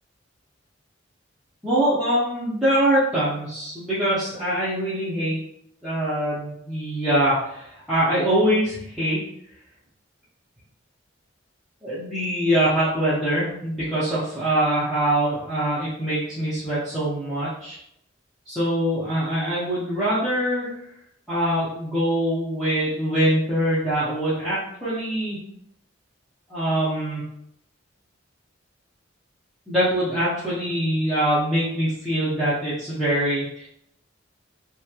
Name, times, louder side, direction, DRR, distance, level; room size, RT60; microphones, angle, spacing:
voice 1, 1.6-5.4 5.8-9.2 11.8-17.8 18.5-20.7 21.3-25.4 26.5-27.3 29.7-33.7, right 1 dB, ahead, -13 dB, 0.6 m, -23 dB
2.9 x 2.2 x 2.2 m, 0.76 s
head